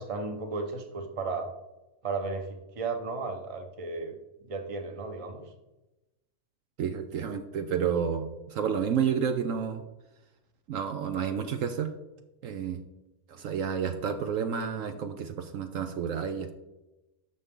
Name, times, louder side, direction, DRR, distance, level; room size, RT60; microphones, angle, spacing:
voice 1, 0.0-1.5 2.0-2.5 2.7-4.1 4.4-5.4, right 3 dB, 25° right, 5 dB, 0.9 m, -34 dB
voice 2, 6.8-9.8 10.7-11.9 12.4-12.8 13.3-16.6, right 7 dB, 70° right, 7 dB, 1.0 m, -30 dB
11.0 x 6.7 x 3.7 m, 1.0 s
omnidirectional pair, 1.5 m